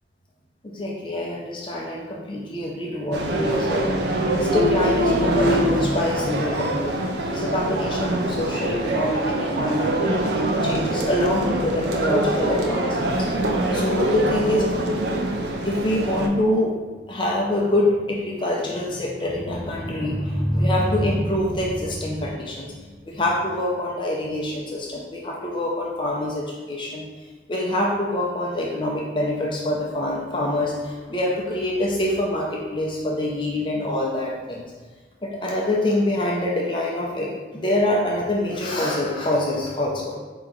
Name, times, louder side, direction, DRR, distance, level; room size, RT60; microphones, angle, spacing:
voice 1, 0.6-3.9 4.3-10.2 10.6-13.3 13.7-14.7 15.3-16.7 17.1-27.0 27.5-34.6 35.2-40.1, left 1 dB, 25° left, -3 dB, 0.5 m, -25 dB
sound 1, 3.1-16.3, right 1 dB, 65° right, 0.5 m, -24 dB
4.5 x 2.9 x 3.7 m, 1.3 s
head